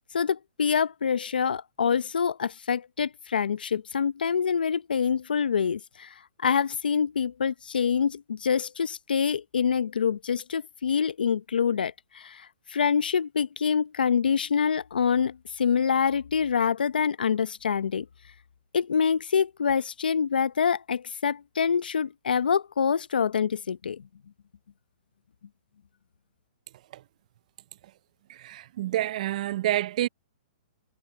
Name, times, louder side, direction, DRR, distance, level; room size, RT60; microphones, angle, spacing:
voice 1, 0.1-6.1 6.4-18.1 18.7-24.0, left 7 dB, 85° left, 0.8 m, -26 dB
voice 2, 28.3-30.1, right 13 dB, 50° right, 0.4 m, -28 dB
hypercardioid pair, 140°, 5 cm